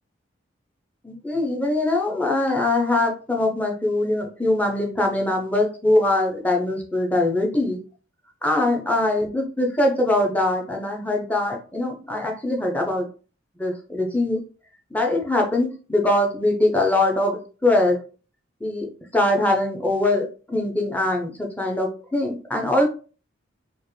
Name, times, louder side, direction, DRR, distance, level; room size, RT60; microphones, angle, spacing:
voice 1, 1.0-7.8 8.4-13.1 13.6-14.4 14.9-18.0 18.6-22.9, left 2 dB, 10° left, 1 dB, 0.7 m, -22 dB
4.4 x 2.5 x 3.1 m, 0.37 s
head